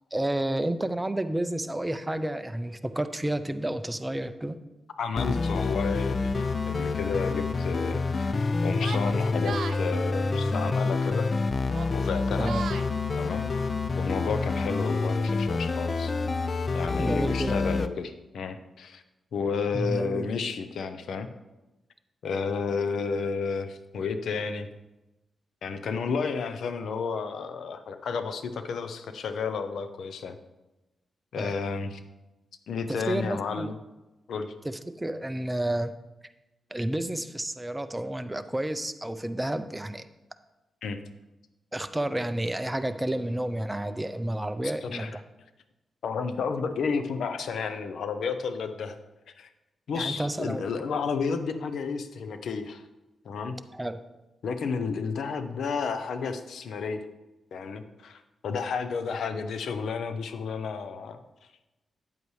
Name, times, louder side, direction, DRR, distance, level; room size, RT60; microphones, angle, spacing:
voice 1, 0.1-4.6 12.4-12.6 17.0-17.8 19.7-20.3 31.4-31.5 32.9-33.7 34.6-35.9 36.7-40.1 41.7-45.1 49.9-50.7 53.7-54.0, right 1 dB, 10° right, 10 dB, 0.5 m, -30 dB
voice 2, 5.0-11.3 11.9-12.5 13.2-13.5 14.0-16.1 16.7-19.0 19.3-21.3 22.2-24.7 25.6-30.4 31.3-32.0 32.7-33.8 34.3-34.5 40.8-41.0 44.8-45.2 46.0-49.0 49.4-49.5 49.9-52.8 53.2-53.5 54.4-57.0 57.5-61.2, left 5 dB, 80° left, 9 dB, 0.7 m, -31 dB
sound 1, 5.2-17.9, left 3 dB, 40° left, 0.4 m, -27 dB
Yell, 8.8-9.8 10.9-11.3 11.6-12.9, right 6 dB, 70° right, 0.4 m, -38 dB
8.9 x 8.2 x 3.2 m, 1.0 s
cardioid pair, 80°, 0 cm